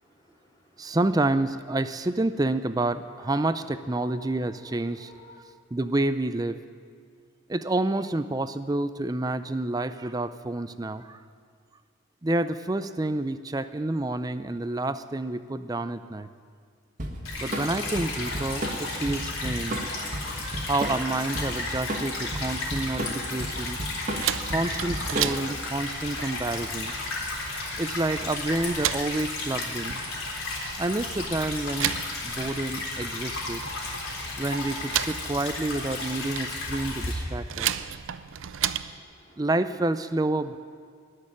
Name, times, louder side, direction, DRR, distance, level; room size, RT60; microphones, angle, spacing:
voice 1, 0.0-1.0 3.2-5.4 38.9-39.4, left 2 dB, 20° left, -3 dB, 2.6 m, -53 dB
voice 2, 0.8-5.1 5.7-6.6 7.5-11.2 12.2-16.3 17.4-19.9 20.3-23.8 24.5-27.0 27.8-30.0 30.8-31.9 32.2-33.6 34.4-37.8 39.4-40.6, right 2 dB, 20° right, 12 dB, 0.4 m, -29 dB
Drum kit / Drum, 17.0-25.6, right 1 dB, 40° right, 1.7 m, -33 dB
Stream / Trickle dribble, 17.2-37.1, left 2 dB, 85° left, 3.8 m, -33 dB
sound 1, 24.2-39.0, right 11 dB, 75° right, 0.5 m, -35 dB
19.5 x 6.6 x 9.6 m, 2.1 s
head